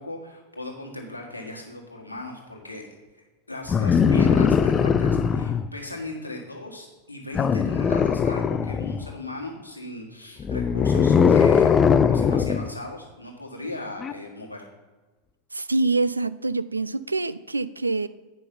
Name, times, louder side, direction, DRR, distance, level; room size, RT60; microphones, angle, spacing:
voice 1, 0.0-2.8 3.5-14.7, left 2 dB, 85° left, 0 dB, 1.7 m, -37 dB
sound 1, 3.7-5.7 7.3-9.1 10.4-12.7 14.0-14.1, left 6 dB, 20° left, 0.4 m, -20 dB
voice 2, 15.5-18.1, right 3 dB, 80° right, 16 dB, 0.3 m, -25 dB
9.1 x 5.4 x 5.5 m, 1.2 s
figure-of-eight pair, 90°, 0 cm